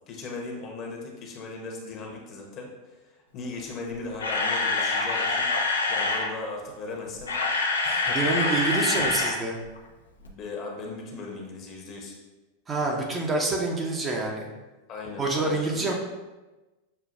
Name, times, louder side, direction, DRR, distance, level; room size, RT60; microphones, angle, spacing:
voice 1, 0.1-5.5 5.9-8.4 8.8-9.0 10.2-12.1 14.9-15.9, left 3 dB, 40° left, 0 dB, 1.0 m, -38 dB
Camera, 3.9-6.3 7.1-9.4 9.6-9.8 10.2-10.3, left 3 dB, 85° left, 0.6 m, -26 dB
voice 2, 8.1-9.6 12.7-14.5 15.2-15.9, right 2 dB, 25° right, 0 dB, 0.8 m, -27 dB
6.6 x 2.4 x 2.6 m, 1.1 s
hypercardioid pair, 95°, 0 cm